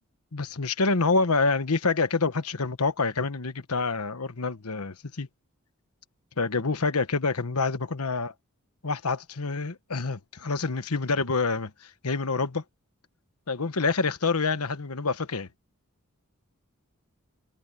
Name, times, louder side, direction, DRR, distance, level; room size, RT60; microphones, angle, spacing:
voice 1, 0.3-5.3 6.4-8.3 8.8-11.7 12.0-12.6 13.5-15.5, left 4 dB, 85° left, 1.2 m, -27 dB
head